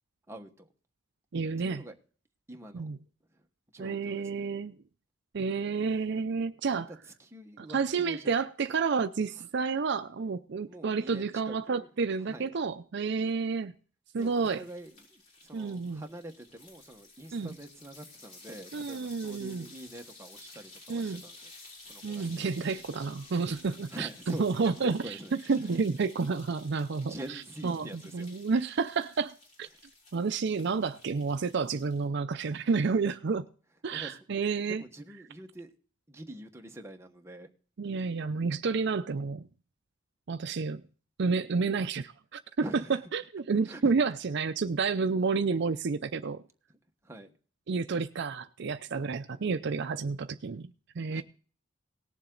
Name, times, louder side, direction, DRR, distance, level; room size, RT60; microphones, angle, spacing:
voice 1, 0.3-0.7 1.6-1.9 2.5-2.9 3.3-3.5 3.7-4.5 6.7-8.3 9.4-9.5 10.7-11.9 12.3-12.5 14.1-21.5 21.8-22.7 23.9-25.7 27.0-28.3 33.9-34.2 34.6-35.7 36.1-37.5 42.6-43.0 43.7-43.9 47.0-47.3 51.0-51.2, right 1 dB, 15° right, 1.3 m, -45 dB
voice 2, 1.3-1.8 2.7-3.0 3.8-4.7 5.3-6.9 7.6-13.7 14.1-14.6 15.5-16.0 17.3-17.5 18.7-19.7 20.9-21.2 22.0-25.1 25.5-27.1 27.6-29.7 30.1-33.5 33.8-34.8 37.8-39.5 40.3-40.8 41.2-42.7 43.1-46.4 47.7-51.2, right 4 dB, 65° right, 0.5 m, -30 dB
sound 1, 14.2-32.1, left 2 dB, 45° left, 6.0 m, -53 dB
18.5 x 7.3 x 3.9 m
head